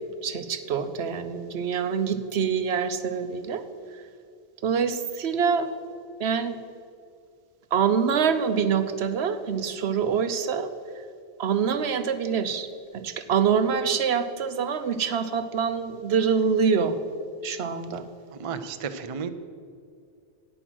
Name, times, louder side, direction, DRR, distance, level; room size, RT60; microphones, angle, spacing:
voice 1, 0.2-3.6 3.9-4.0 4.6-5.7 6.2-6.6 7.7-10.7 11.4-12.7 12.9-17.0 17.4-18.0, right 6 dB, 75° right, 10 dB, 1.0 m, -25 dB
voice 2, 18.3-19.3, right 6 dB, 40° right, 9 dB, 0.6 m, -33 dB
10.0 x 9.1 x 6.2 m, 2.3 s
omnidirectional pair, 1.1 m